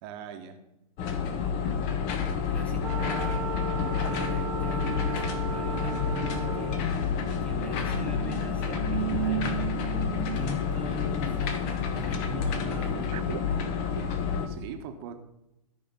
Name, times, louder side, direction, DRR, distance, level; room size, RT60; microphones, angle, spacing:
voice 1, 0.0-0.6 2.1-2.5 14.5-15.2, right 8 dB, 40° right, 6 dB, 1.2 m, -41 dB
sound 1, 1.0-14.5, left 7 dB, 35° left, 1.2 m, -29 dB
voice 2, 2.3-3.5 4.0-6.9 7.4-13.4, left 2 dB, 5° left, 4 dB, 0.8 m, -40 dB
Wind instrument woodwind instrument, 2.8-7.0, right 9 dB, 55° right, 1.2 m, -36 dB
sound 2, 7.2-14.2, right 13 dB, 70° right, 0.5 m, -37 dB
13.0 x 5.1 x 5.4 m, 0.89 s
hypercardioid pair, 145°, 20 cm